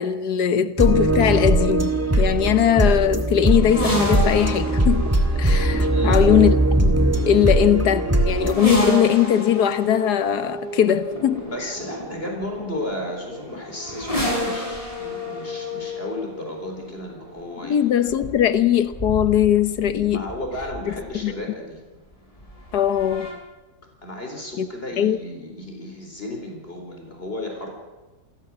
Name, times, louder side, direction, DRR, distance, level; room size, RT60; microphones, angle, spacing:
voice 1, 0.0-5.1 5.4-11.5 17.6-20.2 20.9-21.0 21.2-21.3 22.7-23.3 24.6-24.7 25.0-25.2, left 10 dB, 85° left, 1.7 m, -20 dB
sound 1, 0.8-8.5, right 1 dB, 10° right, 1.9 m, -20 dB
sound 2, 3.5-21.3 22.4-23.3, equal, 20° left, 6.1 m, -30 dB
voice 2, 5.9-6.5 11.5-17.9 20.1-21.8 24.0-27.7, left 1 dB, 35° left, 4.5 m, -33 dB
28.0 x 14.0 x 7.4 m
omnidirectional pair, 1.7 m